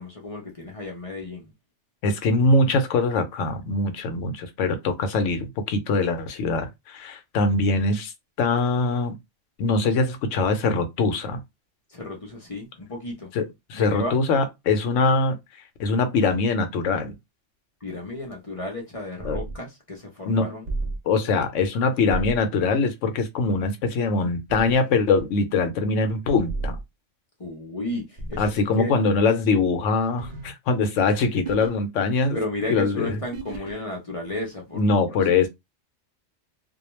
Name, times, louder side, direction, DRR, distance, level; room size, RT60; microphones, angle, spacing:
voice 1, 0.0-1.5 11.9-13.3 13.7-14.2 17.8-20.6 27.4-29.0 32.3-35.0 35.3-35.5, left 2 dB, 35° left, 0.6 m, -33 dB
voice 2, 2.0-8.1 8.4-9.2 9.6-11.4 13.3-15.4 15.8-17.1 19.2-19.4 20.3-20.5 21.1-26.8 28.4-32.4 32.7-33.2 34.7-35.5, left 3 dB, 85° left, 1.0 m, -23 dB
sound 1, 19.2-19.6 20.7-21.0 22.1-22.4 24.5-24.8 26.5-26.8 28.2-28.6 30.2-30.5 31.4-31.7 33.3-33.7, right 3 dB, 60° right, 0.4 m, -32 dB
2.2 x 2.2 x 3.0 m
omnidirectional pair, 1.3 m